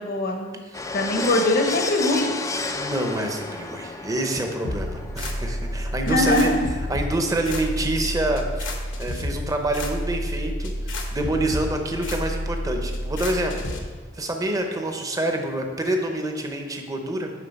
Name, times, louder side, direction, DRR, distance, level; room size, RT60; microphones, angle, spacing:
voice 1, 0.0-0.6 0.9-2.4 6.1-6.7, left 2 dB, 50° left, 3 dB, 0.9 m, -22 dB
sound 1, 0.7-10.5 10.7-10.8 11.0-11.1 13.7-13.8 13.9-14.0 14.2-16.0, left 3 dB, 15° left, 0.4 m, -34 dB
voice 2, 2.7-6.5 6.9-8.6 9.0-13.6 14.1-17.3, right 1 dB, 20° right, 3 dB, 0.8 m, -27 dB
sound 2, 4.6-13.8, equal, 75° left, 1.0 m, -30 dB
9.3 x 3.7 x 5.3 m, 1.4 s
head